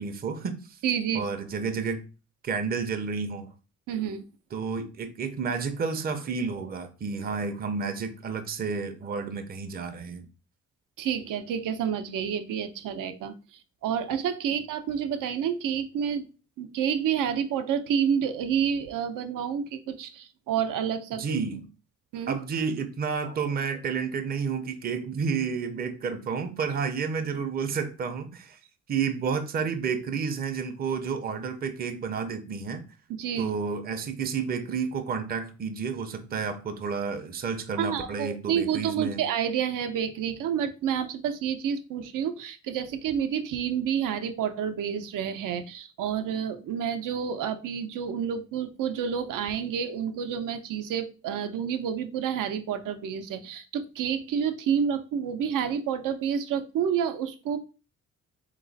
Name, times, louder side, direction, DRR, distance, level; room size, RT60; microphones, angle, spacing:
voice 1, 0.0-0.8 1.1-2.0 2.4-3.5 4.5-10.3 21.1-21.7 22.3-28.6 28.9-32.9 33.4-39.2, right 5 dB, 30° right, 0.5 m, -31 dB
voice 2, 0.8-1.3 3.9-4.2 11.0-13.3 13.8-16.3 16.6-21.2 22.1-22.4 33.1-33.5 37.8-57.6, right 8 dB, 85° right, 0.7 m, -29 dB
4.1 x 3.0 x 3.9 m
cardioid pair, 160°, 31 cm